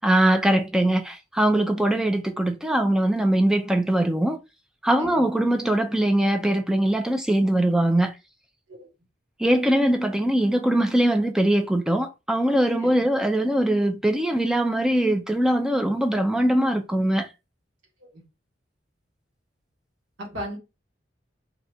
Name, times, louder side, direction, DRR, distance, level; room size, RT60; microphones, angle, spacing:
voice 1, 0.0-4.4 4.8-8.1 9.4-17.3, right 1 dB, 5° right, 0.3 m, -22 dB
voice 2, 20.2-20.6, equal, 90° right, 1.6 m, -37 dB
2.7 x 2.3 x 4.1 m
head